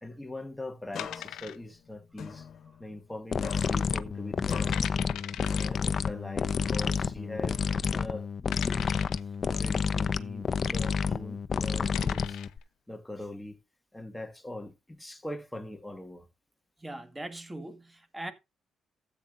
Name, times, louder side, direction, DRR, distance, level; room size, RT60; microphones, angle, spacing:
voice 1, 0.0-2.5 2.8-4.8 5.3-7.6 7.9-8.9 9.5-12.4 12.9-13.6 13.9-16.3, left 1 dB, 10° left, 1.8 m, -42 dB
sound 1, 0.9-3.2 3.4-6.1 6.5-8.1, left 7 dB, 60° left, 1.5 m, -45 dB
sound 2, 1.0-1.9 2.2-2.3 2.9-3.3 3.7-3.8 4.4-4.5 4.7-5.7 6.8-6.9 7.6-7.7 8.5-9.3 11.2-11.4 11.7-12.6, left 12 dB, 85° left, 0.9 m, -41 dB
sound 3, 3.3-12.6, left 5 dB, 45° left, 0.8 m, -29 dB
voice 2, 16.8-18.3, right 1 dB, 15° right, 1.9 m, -40 dB
14.5 x 8.7 x 2.6 m
cardioid pair, 90°, 0 cm